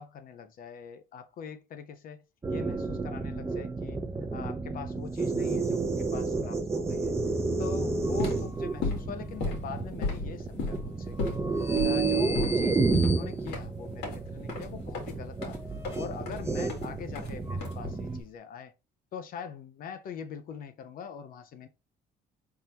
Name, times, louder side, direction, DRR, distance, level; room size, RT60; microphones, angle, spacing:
voice 1, 0.0-2.2 2.5-4.0 4.3-7.2 7.6-11.4 11.8-15.7 15.9-18.7 19.1-21.7, left 6 dB, 55° left, 0.6 m, -42 dB
sound 1, 2.4-18.2, right 3 dB, 15° right, 0.6 m, -30 dB
sound 2, 8.0-18.2, left 4 dB, 85° left, 1.8 m, -36 dB
4.4 x 3.6 x 2.8 m
cardioid pair, 110°, 17 cm